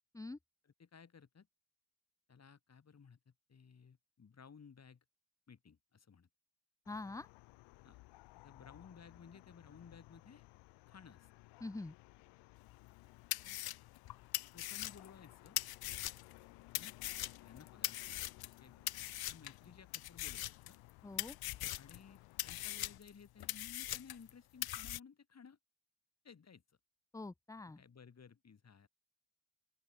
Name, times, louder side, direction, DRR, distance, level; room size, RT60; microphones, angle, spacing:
voice 1, 0.6-1.5 2.3-5.0 5.5-6.3 7.8-8.0 8.4-10.4 10.9-11.3 13.4-13.6 14.5-15.6 16.7-16.9 17.4-20.8 21.8-25.6 26.2-26.6 27.8-28.9, left 6 dB, 40° left, 4.7 m, -58 dB
sound 1, 6.9-23.0, left 22 dB, 80° left, 6.9 m, -60 dB
voice 2, 6.9-7.3 11.6-11.9 21.0-21.4 27.1-27.8, left 2 dB, 10° left, 0.7 m, -45 dB
sound 2, 12.8-12.9 13.3-16.4 16.7-18.6 18.9-19.6 19.9-20.9 21.2-22.0 22.4-24.3 24.6-25.0, left 15 dB, 60° left, 1.1 m, -41 dB
open air
supercardioid pair, 60°, 41 cm